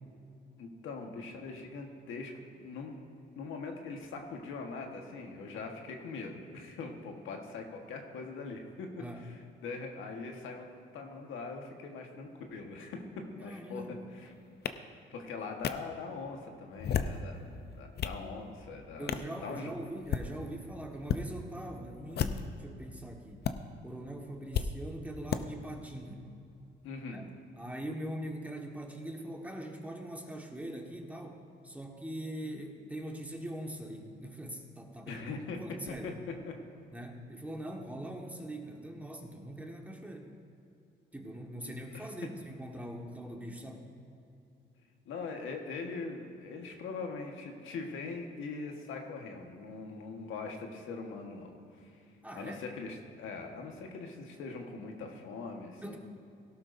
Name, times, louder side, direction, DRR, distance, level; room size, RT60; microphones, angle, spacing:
voice 1, 0.6-2.9 3.4-8.9 9.1-10.7 10.9-13.0 13.3-14.3 15.1-19.7 26.8-27.2 35.1-35.6 36.0-36.1 36.4-36.5 41.6-42.1 45.0-52.0 52.3-56.0, left 4 dB, 85° left, 3 dB, 1.4 m, -42 dB
voice 2, 9.0-9.3 13.4-13.9 19.0-23.4 23.8-26.2 27.1-27.2 27.5-35.2 35.6-36.1 36.9-40.3 41.1-43.9 52.2-52.6 55.8-56.0, right 1 dB, 5° right, 1 dB, 1.4 m, -42 dB
sound 1, 14.7-14.8 15.6-15.7 16.7-17.2 17.7-18.2 19.1-19.3 20.0-20.3 21.0-21.2 22.1-22.6 23.4-23.5 24.5-24.7 25.3-25.4, left 8 dB, 55° left, 0.6 m, -32 dB
17.5 x 12.0 x 2.6 m, 2.7 s
cardioid pair, 90°, 20 cm